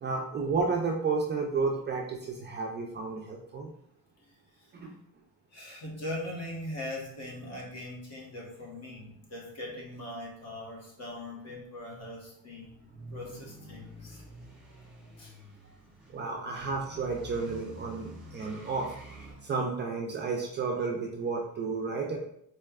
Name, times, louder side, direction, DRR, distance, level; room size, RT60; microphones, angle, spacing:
voice 1, 0.0-3.7 4.7-4.9 16.1-18.9 19.4-22.2, right 4 dB, 30° right, 0 dB, 0.4 m, -32 dB
voice 2, 5.5-12.7 13.1-14.2 15.2-15.3 15.6-15.7 19.3-19.5 20.7-20.8, left 1 dB, 45° left, -2 dB, 1.1 m, -41 dB
sound 1, 12.6-19.3, right 1 dB, ahead, 1.2 m, -48 dB
4.0 x 3.2 x 2.3 m, 0.70 s
cardioid pair, 165°, 36 cm